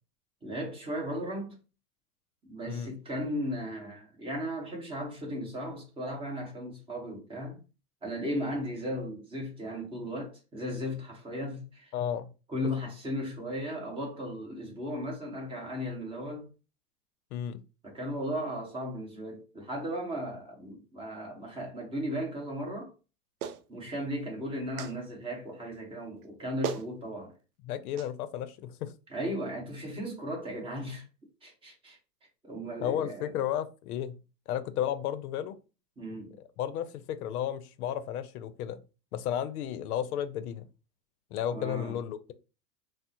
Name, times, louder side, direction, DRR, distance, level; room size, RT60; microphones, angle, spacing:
voice 1, 0.4-1.6 2.4-7.6 8.0-11.9 12.5-16.5 17.8-22.9 23.7-27.3 29.1-31.0 31.4-32.0 32.4-33.3 36.0-36.4 41.5-42.0, equal, 10° right, 1.0 m, -36 dB
voice 2, 11.9-12.3 17.3-17.6 27.6-28.9 32.8-34.2 34.5-35.6 36.6-38.8 39.1-40.7 41.3-42.3, left 10 dB, 65° left, 0.6 m, -33 dB
Clapping, 23.4-23.6 24.8-25.0 26.2-26.3 26.6-26.9 28.0-28.1, right 8 dB, 65° right, 0.6 m, -34 dB
3.5 x 2.1 x 2.8 m
hypercardioid pair, 130°, 48 cm